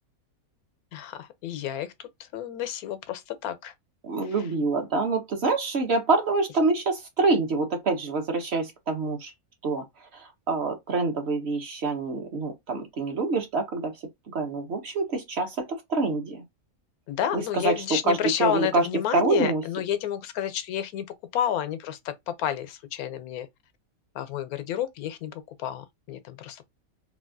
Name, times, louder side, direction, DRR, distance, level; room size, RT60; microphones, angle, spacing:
voice 1, 0.9-3.7 4.2-4.5 17.1-21.1 21.3-23.5 24.1-26.6, left 10 dB, 85° left, 1.1 m, -30 dB
voice 2, 4.0-9.3 9.6-9.8 10.1-13.9 14.3-16.4 17.3-18.9 19.1-19.6, right 3 dB, 55° right, 1.0 m, -26 dB
3.4 x 2.3 x 2.5 m
omnidirectional pair, 1.5 m